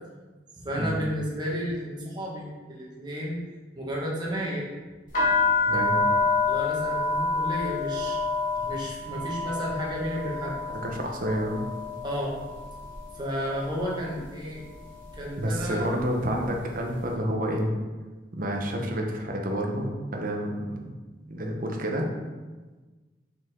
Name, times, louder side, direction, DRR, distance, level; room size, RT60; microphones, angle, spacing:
voice 1, 0.6-3.4 3.7-4.7 6.5-8.2 8.6-10.6 12.0-12.4 13.1-14.6 15.2-15.9, equal, 25° right, -4 dB, 1.6 m, -32 dB
sound 1, 5.1-13.0 13.3-13.9 14.6-14.9 15.1-16.6, left 3 dB, 50° left, 1.7 m, -28 dB
voice 2, 10.7-11.6 15.4-17.7 18.3-20.9 21.3-22.1, equal, 50° right, 1 dB, 1.0 m, -29 dB
5.9 x 5.4 x 3.7 m, 1.3 s
head